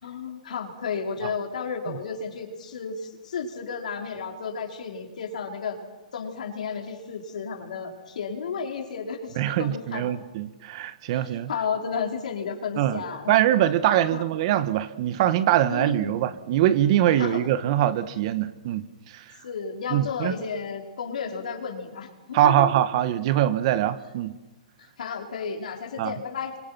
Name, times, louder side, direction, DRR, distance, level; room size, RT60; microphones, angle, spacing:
voice 1, 0.0-5.8 6.1-10.1 11.1-13.3 14.1-14.3 15.7-16.3 17.2-17.5 19.4-22.7 24.8-26.6, left 6 dB, 75° left, 2 dB, 5.0 m, -33 dB
voice 2, 9.4-11.5 12.8-13.0 13.3-18.9 19.1-19.2 19.9-20.3 22.3-24.4 26.0-26.1, right 12 dB, 45° right, 12 dB, 1.6 m, -23 dB
29.0 x 25.5 x 6.1 m, 1.1 s
hypercardioid pair, 145°, 4 cm